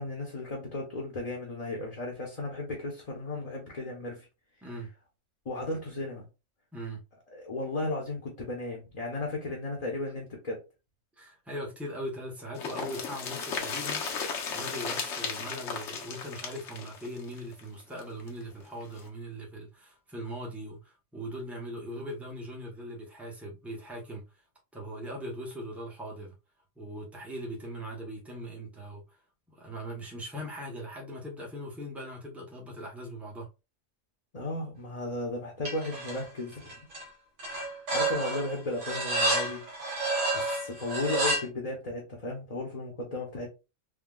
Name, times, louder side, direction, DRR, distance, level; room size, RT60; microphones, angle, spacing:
voice 1, 0.0-4.3 5.4-6.3 7.3-10.6 34.3-36.7 37.9-39.7 40.3-43.5, left 2 dB, 35° left, 0.7 m, -35 dB
voice 2, 6.7-7.0 11.2-14.1 14.5-24.4 24.7-26.3 26.8-29.2 29.5-33.5, equal, ahead, 0.6 m, -40 dB
sound 1, 12.6-18.3 18.6-18.7 19.0-19.1, left 5 dB, 65° left, 1.0 m, -35 dB
sound 2, 35.7-36.2 36.5-37.0 37.4-41.4, right 2 dB, 70° right, 1.3 m, -30 dB
3.5 x 2.2 x 2.3 m
omnidirectional pair, 1.3 m